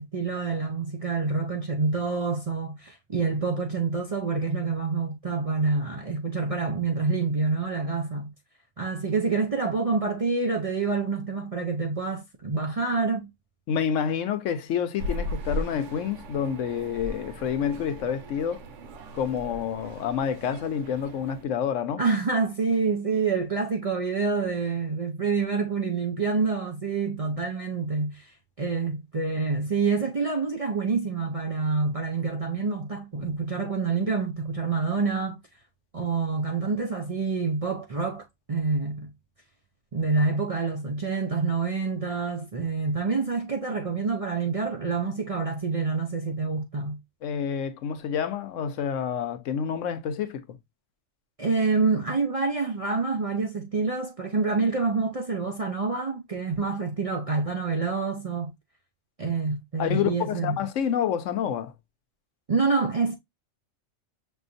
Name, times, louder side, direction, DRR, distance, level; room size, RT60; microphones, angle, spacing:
voice 1, 0.0-8.3 8.8-13.3 22.0-28.3 28.6-35.4 35.9-39.1 39.9-47.0 51.4-58.5 59.2-60.6 62.5-63.2, right 4 dB, 45° right, 0.5 m, -27 dB
voice 2, 13.7-18.6 19.1-22.0 47.2-50.4 59.8-61.7, left 8 dB, 80° left, 1.0 m, -28 dB
sound 1, 15.0-21.4, equal, 75° right, 1.0 m, -37 dB
6.2 x 2.5 x 2.5 m
omnidirectional pair, 1.3 m